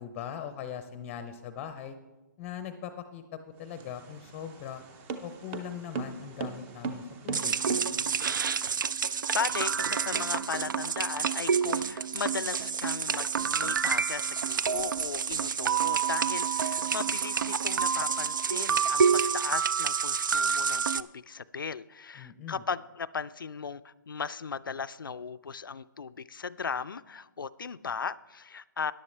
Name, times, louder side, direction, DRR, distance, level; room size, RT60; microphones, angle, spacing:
voice 1, 0.0-2.0 2.4-4.8 5.2-7.6 22.2-22.6, left 8 dB, 20° left, 10 dB, 0.6 m, -40 dB
sound 1, 3.6-8.4, right 4 dB, 20° right, 0.6 m, -38 dB
sound 2, 7.3-21.0, right 6 dB, 70° right, 0.4 m, -28 dB
voice 2, 9.0-28.9, left 5 dB, 80° left, 16 dB, 0.4 m, -37 dB
sound 3, 9.9-10.8 11.8-12.0 12.6-12.8 13.4-13.6 14.8-15.5 16.8-17.6, right 4 dB, 50° right, 1.2 m, -47 dB
14.0 x 10.5 x 3.3 m, 1.1 s
figure-of-eight pair, 140°, 11 cm